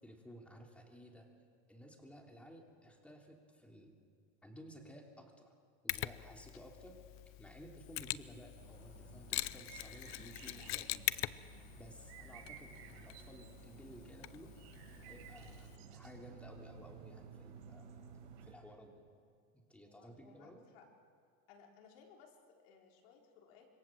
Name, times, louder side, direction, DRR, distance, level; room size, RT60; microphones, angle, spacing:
voice 1, 0.0-1.3 1.7-4.0 4.4-5.5 5.8-7.0 7.4-11.0 11.8-14.5 15.0-17.9 18.4-19.0 19.5-20.6, equal, 5° left, 1 dB, 3.2 m, -55 dB
Mechanisms, 5.9-15.8, left 17 dB, 45° left, 0.6 m, -44 dB
sound 1, 8.6-18.5, right 7 dB, 80° right, 5.4 m, -55 dB
voice 2, 19.9-20.8 21.5-23.7, left 6 dB, 70° left, 0 dB, 4.5 m, -62 dB
26.5 x 23.5 x 7.5 m, 2.2 s
supercardioid pair, 145°, 31 cm